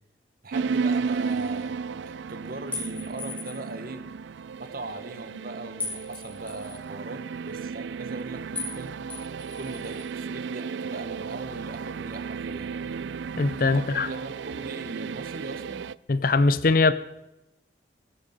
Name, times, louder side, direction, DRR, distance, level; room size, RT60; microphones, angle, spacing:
voice 1, 0.4-4.1 4.6-9.1 9.5-12.7 13.6-15.9, right 2 dB, 55° right, 10 dB, 1.3 m, -40 dB
sound 1, 0.5-15.9, right 5 dB, 90° right, 0.4 m, -33 dB
sound 2, 2.7-3.7 5.8-6.8 8.5-8.8 9.1-10.0, left 3 dB, 10° left, 3.9 m, -37 dB
voice 2, 13.4-14.1 16.1-16.9, left 3 dB, 50° left, 15 dB, 0.6 m, -21 dB
19.5 x 8.5 x 5.7 m, 0.91 s
head